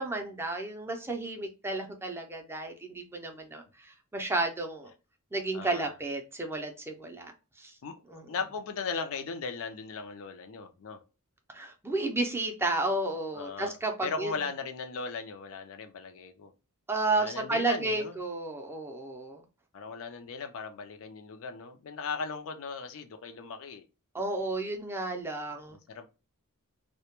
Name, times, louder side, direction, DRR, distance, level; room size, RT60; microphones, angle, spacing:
voice 1, 0.0-4.9 5.3-7.3 7.6-7.7 8.1-8.2 11.5-14.3 16.9-19.4 24.1-25.8, right 2 dB, 10° right, 0.4 m, -32 dB
voice 2, 5.5-5.9 7.0-7.1 7.8-11.0 13.3-13.8 14.0-16.5 17.2-18.2 19.7-23.8 25.7-26.1, left 5 dB, 65° left, 0.4 m, -38 dB
2.1 x 2.1 x 2.8 m
head